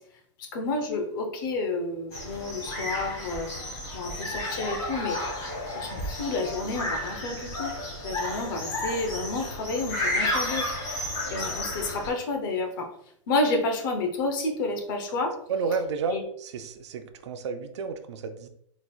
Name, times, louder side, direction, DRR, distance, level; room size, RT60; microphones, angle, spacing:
voice 1, 0.4-3.5 3.9-5.2 5.7-7.7 8.0-10.7 11.3-12.9 13.3-15.3 16.1-16.2, left 2 dB, 45° left, 3 dB, 0.9 m, -30 dB
sound 1, 2.1-12.1, left 1 dB, 25° left, 1.5 m, -32 dB
voice 2, 15.5-18.5, right 5 dB, 65° right, 8 dB, 0.5 m, -31 dB
4.5 x 4.0 x 2.4 m, 0.68 s
supercardioid pair, 165°, 16 cm